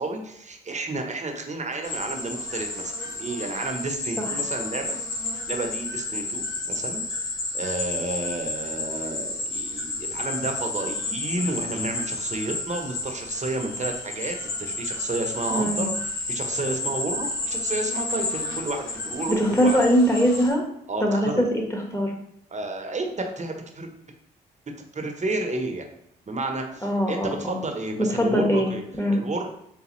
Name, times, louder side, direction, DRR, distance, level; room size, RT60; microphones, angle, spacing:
voice 1, 0.0-2.9 3.2-7.0 7.5-19.8 20.9-21.5 22.5-23.9 24.9-25.9 26.3-28.8 29.1-29.5, right 2 dB, 35° right, 4 dB, 0.9 m, -31 dB
sound 1, 1.8-20.5, left 2 dB, 65° left, 1.1 m, -31 dB
voice 2, 15.5-15.8 19.3-20.6 21.0-21.6 21.9-22.1 26.8-27.6 28.2-29.2, equal, 15° left, 1 dB, 1.3 m, -22 dB
4.1 x 3.4 x 3.1 m, 0.75 s
hypercardioid pair, 45°, 21 cm